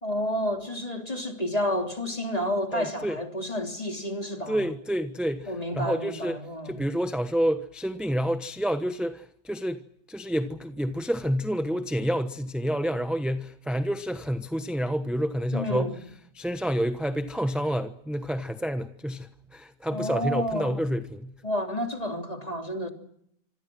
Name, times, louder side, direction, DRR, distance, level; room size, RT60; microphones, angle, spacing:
voice 1, 0.0-4.6 5.5-6.8 15.5-15.9 19.9-20.7 21.4-22.9, equal, 20° left, 3.1 m, -30 dB
voice 2, 2.7-3.2 4.5-6.4 6.6-15.9 16.3-21.3, equal, ahead, 0.8 m, -29 dB
26.5 x 26.0 x 6.2 m
omnidirectional pair, 1.8 m